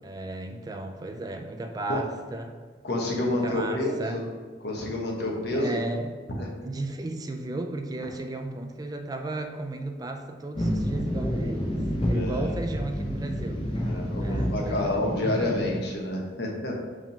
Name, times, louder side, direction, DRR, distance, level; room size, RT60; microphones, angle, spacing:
voice 1, 0.0-2.6 3.3-4.2 5.5-6.1 6.6-13.6 14.2-15.0, right 2 dB, 20° right, 5 dB, 0.3 m, -34 dB
voice 2, 2.8-4.2 4.6-5.8 6.4-6.5 12.1-12.5 13.8-16.7, left 1 dB, 65° left, -1 dB, 1.2 m, -29 dB
sound 1, 10.6-15.8, equal, 30° left, 0.9 m, -29 dB
4.9 x 3.7 x 5.2 m, 1.5 s
head